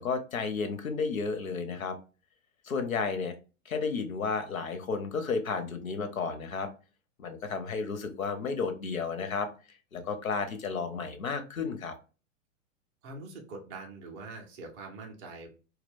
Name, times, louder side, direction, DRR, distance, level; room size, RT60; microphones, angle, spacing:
voice 1, 0.0-2.0 2.6-3.3 3.7-6.7 7.2-9.5 9.9-11.9, left 5 dB, 80° left, 8 dB, 0.7 m, -32 dB
voice 2, 13.0-15.5, right 3 dB, 20° right, 1 dB, 0.3 m, -43 dB
2.3 x 2.1 x 3.4 m, 0.35 s
figure-of-eight pair, 100°, 41 cm